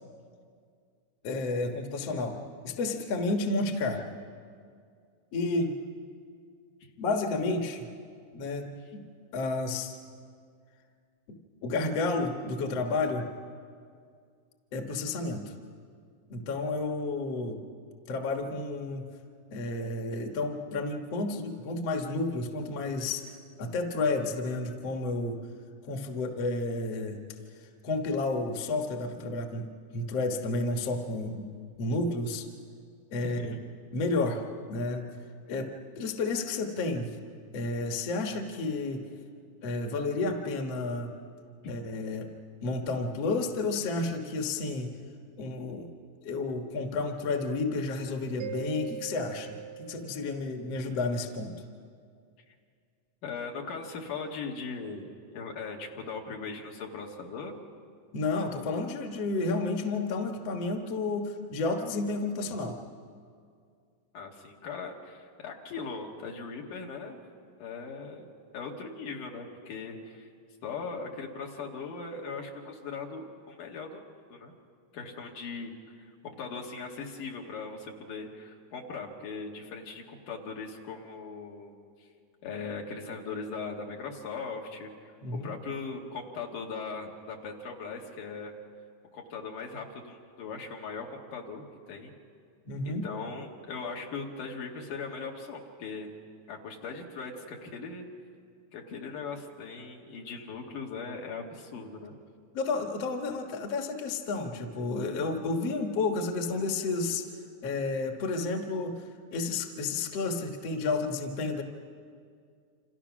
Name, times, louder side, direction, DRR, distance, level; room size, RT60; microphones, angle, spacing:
voice 1, 1.2-4.1 5.3-5.7 7.0-7.9 8.3-9.0 9.3-10.0 11.6-13.3 14.7-15.5 16.3-17.6 18.1-19.0 19.5-23.3 23.6-25.4 25.8-27.2 27.8-31.5 31.8-32.5 33.1-33.6 33.9-35.1 35.5-37.2 37.5-39.0 39.6-41.1 41.7-42.3 42.6-45.0 45.4-45.9 46.2-51.5 58.1-62.8 85.2-85.5 92.7-93.0 102.5-107.3 107.6-108.9 109.3-111.6, left 3 dB, 55° left, 3 dB, 2.3 m, -31 dB
Mallet percussion, 48.4-50.9, right 8 dB, 85° right, 2.4 m, -41 dB
voice 2, 53.2-57.6 64.1-67.2 67.6-70.3 70.6-74.0 74.3-74.5 74.9-75.7 76.0-82.1 82.4-88.5 89.1-92.1 92.9-96.1 96.5-98.1 98.7-102.1, left 4 dB, 80° left, 0 dB, 3.6 m, -39 dB
28.0 x 27.0 x 6.2 m, 2.2 s
omnidirectional pair, 3.6 m